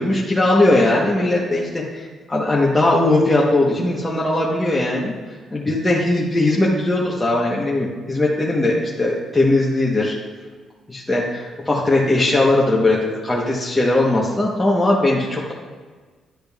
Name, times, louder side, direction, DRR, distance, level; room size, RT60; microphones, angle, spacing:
voice 1, 0.0-5.1 5.5-10.1 10.9-15.5, left 2 dB, 15° left, -5 dB, 1.1 m, -19 dB
10.5 x 5.0 x 2.4 m, 1.4 s
cardioid pair, 90°, 0 cm